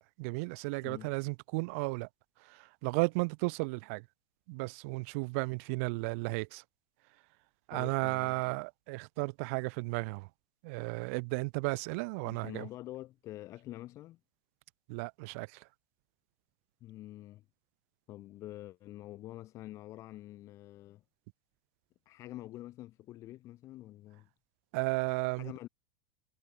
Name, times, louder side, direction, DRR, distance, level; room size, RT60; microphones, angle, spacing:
voice 1, 0.2-2.1 2.5-4.0 4.5-6.6 7.7-10.3 10.6-12.7 14.9-15.5 24.7-25.5, right 30 dB, 55° right, 1.3 m, -34 dB
voice 2, 7.7-8.6 12.2-14.2 16.8-17.4 18.1-21.0 22.1-24.3 25.4-25.7, left 15 dB, 35° left, 4.0 m, -46 dB
supercardioid pair, 150°, 9 cm